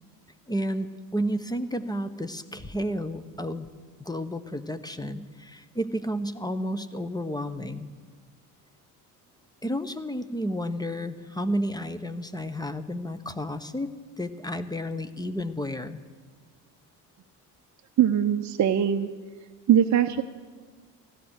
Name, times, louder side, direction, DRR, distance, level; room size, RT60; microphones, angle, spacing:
voice 1, 0.5-3.7 4.0-7.9 9.6-13.9 14.2-16.0, equal, 10° left, 11 dB, 1.1 m, -31 dB
voice 2, 18.0-19.1 19.7-20.2, right 9 dB, 35° right, 6 dB, 0.8 m, -21 dB
15.0 x 12.0 x 6.5 m, 1.5 s
hypercardioid pair, 55°, 48 cm